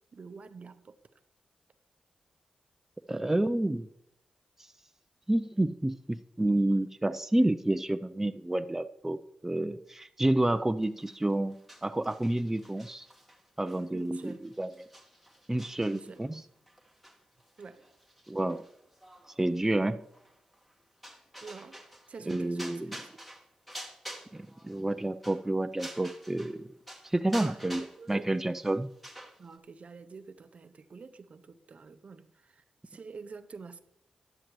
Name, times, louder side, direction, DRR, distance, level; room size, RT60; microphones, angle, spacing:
voice 1, 0.1-1.0 13.9-14.4 15.9-16.2 17.6-17.9 21.4-21.8 22.1-23.0 26.6-26.7 27.4-27.6 28.0-28.3 29.4-33.8, right 4 dB, 55° right, 0.7 m, -47 dB
voice 2, 3.1-3.9 5.3-11.6 11.8-13.1 13.6-14.7 15.5-16.4 18.3-18.6 19.4-20.0 22.3-22.9 24.3-26.7 27.0-28.9, right 1 dB, 15° right, 0.5 m, -29 dB
sound 1, 10.8-26.6 26.9-29.6, right 1 dB, ahead, 1.7 m, -49 dB
11.5 x 10.5 x 3.1 m
supercardioid pair, 50°, 3 cm